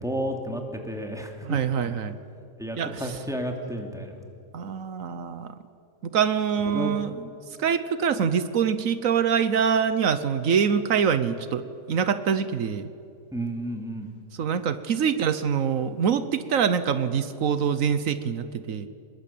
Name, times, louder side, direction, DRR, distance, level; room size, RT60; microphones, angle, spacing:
voice 1, 0.0-1.9 2.6-4.1 6.7-6.9 13.3-14.1, right 1 dB, ahead, 2 dB, 2.7 m, -32 dB
voice 2, 1.4-2.2 2.7-3.2 4.5-5.5 6.0-7.3 7.6-12.9 14.4-18.9, right 7 dB, 80° right, 12 dB, 1.3 m, -25 dB
25.0 x 21.0 x 8.5 m, 2.4 s
omnidirectional pair, 1.4 m